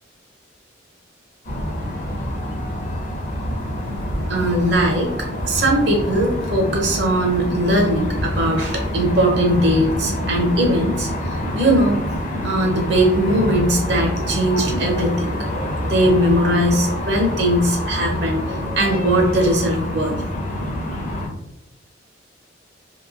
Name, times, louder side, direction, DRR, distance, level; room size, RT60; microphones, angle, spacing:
sound 1, 1.4-21.3, left 1 dB, 40° left, 0.6 m, -26 dB
voice 1, 4.3-5.1 5.4-11.1 11.5-12.0 12.4-15.3 15.8-18.4 18.8-20.1, right 1 dB, 60° right, 2 dB, 0.5 m, -19 dB
2.9 x 2.6 x 2.4 m, 0.88 s
head